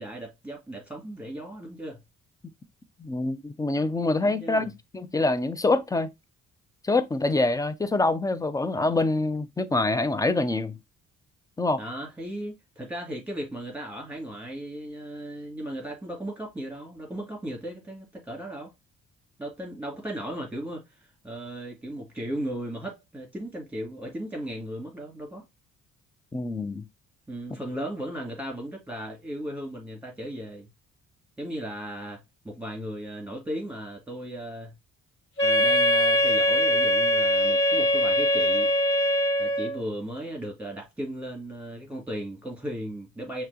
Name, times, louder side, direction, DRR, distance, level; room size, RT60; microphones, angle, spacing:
voice 1, 0.0-2.0 4.2-4.7 11.8-18.7 19.4-25.4 27.3-30.7 31.4-34.7 35.4-38.7 39.4-43.4, right 1 dB, 5° right, 2.7 m, -36 dB
voice 2, 3.0-6.1 6.8-10.8 11.6-11.8 26.3-26.8, left 2 dB, 10° left, 0.5 m, -25 dB
Wind instrument woodwind instrument, 35.4-39.8, equal, 40° left, 1.9 m, -22 dB
5.8 x 2.9 x 3.0 m
cardioid pair, 90°, 30 cm